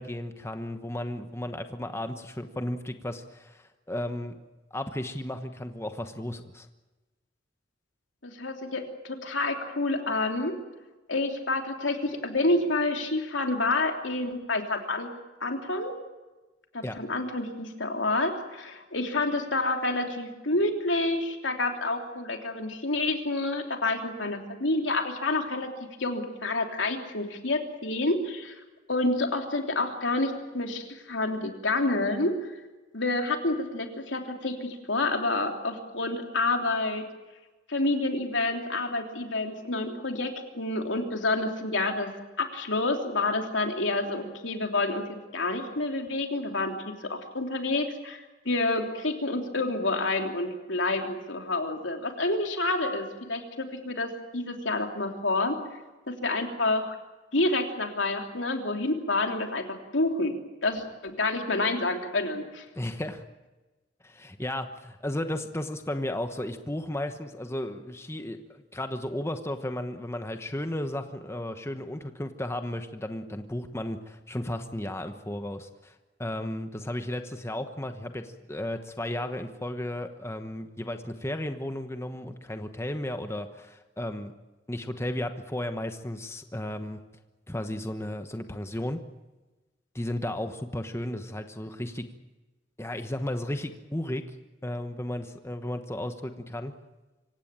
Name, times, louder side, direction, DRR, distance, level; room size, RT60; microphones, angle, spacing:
voice 1, 0.0-4.3 4.7-6.7 16.8-17.0 62.7-63.2 64.0-84.3 84.7-87.0 87.5-89.0 89.9-92.0 92.8-94.4 94.6-96.7, left 1 dB, 15° left, 7 dB, 1.1 m, -34 dB
voice 2, 8.2-10.5 11.1-15.1 15.4-15.9 16.7-25.7 26.0-28.5 28.9-32.3 32.9-37.0 37.7-42.1 42.4-45.0 45.3-55.6 56.1-56.9 57.3-60.3 60.6-62.6, left 2 dB, 85° left, 4 dB, 3.3 m, -28 dB
25.5 x 16.5 x 9.0 m, 1.1 s
head